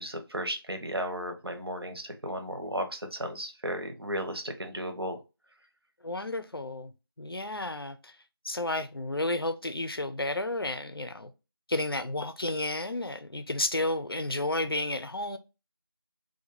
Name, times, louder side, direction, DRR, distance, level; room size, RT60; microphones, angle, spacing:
voice 1, 0.0-5.2, equal, 75° right, 0.8 m, -34 dB
voice 2, 6.0-6.9 7.2-8.1 8.4-11.3 11.7-15.4, left 2 dB, 70° left, 0.5 m, -32 dB
2.6 x 2.2 x 2.9 m
figure-of-eight pair, 175°, 13 cm